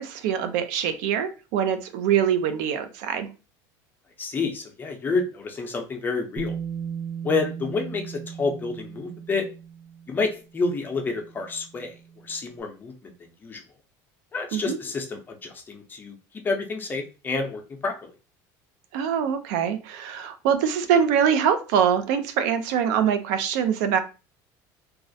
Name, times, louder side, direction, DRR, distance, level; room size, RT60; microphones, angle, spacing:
voice 1, 0.0-3.3 14.5-14.8 18.9-24.0, right 8 dB, 80° right, 9 dB, 0.4 m, -24 dB
voice 2, 4.2-6.5 7.2-9.5 10.1-12.0 12.2-13.1 13.4-13.6 14.3-16.2 16.4-18.1, left 4 dB, 20° left, 3 dB, 0.5 m, -29 dB
Bass guitar, 6.4-12.4, right 7 dB, 15° right, 0.7 m, -37 dB
2.3 x 2.0 x 2.6 m, 0.32 s
cardioid pair, 130°, 9 cm